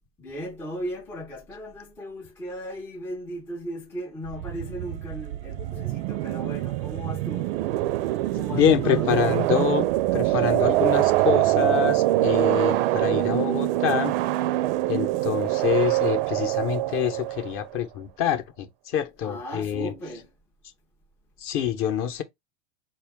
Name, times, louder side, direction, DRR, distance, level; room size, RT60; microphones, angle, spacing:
voice 1, 0.2-7.6 8.3-9.1 19.2-20.3, equal, 5° left, 0.4 m, -36 dB
sound 1, 4.3-17.7, right 16 dB, 50° right, 0.5 m, -24 dB
voice 2, 8.5-14.1 14.9-19.9 21.4-22.2, left 9 dB, 35° left, 0.8 m, -26 dB
4.4 x 2.3 x 3.4 m
hypercardioid pair, 110°, 36 cm